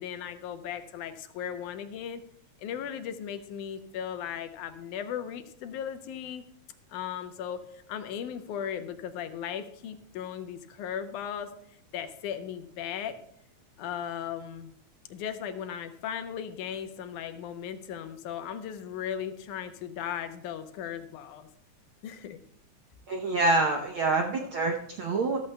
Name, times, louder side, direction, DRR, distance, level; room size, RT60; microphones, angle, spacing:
voice 1, 0.0-2.2 2.6-6.4 6.9-7.6 7.9-11.5 11.9-13.2 13.8-14.7 15.1-21.5 22.0-22.4, left 9 dB, 90° left, 9 dB, 2.3 m, -37 dB
voice 2, 23.1-25.4, right 3 dB, 75° right, 2 dB, 1.1 m, -26 dB
14.5 x 14.0 x 2.2 m, 0.68 s
omnidirectional pair, 3.5 m